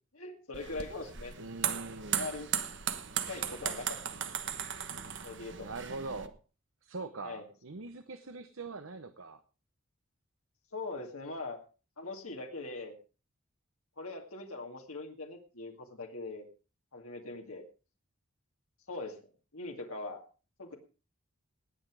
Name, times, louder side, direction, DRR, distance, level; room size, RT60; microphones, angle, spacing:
voice 1, 0.1-1.3 2.2-2.5 3.3-4.0 5.2-5.7 7.2-7.4 10.7-11.6 12.0-13.0 14.0-16.5 16.9-17.7 18.9-19.2 19.5-20.2 20.6-20.7, left 2 dB, 85° left, 2 dB, 2.3 m, -41 dB
sound 1, 0.5-6.3, right 9 dB, 55° right, 1.2 m, -37 dB
voice 2, 1.4-2.3 5.6-6.4 6.8-9.4, right 3 dB, 70° right, 10 dB, 1.0 m, -42 dB
19.0 x 8.2 x 4.8 m, 0.35 s
head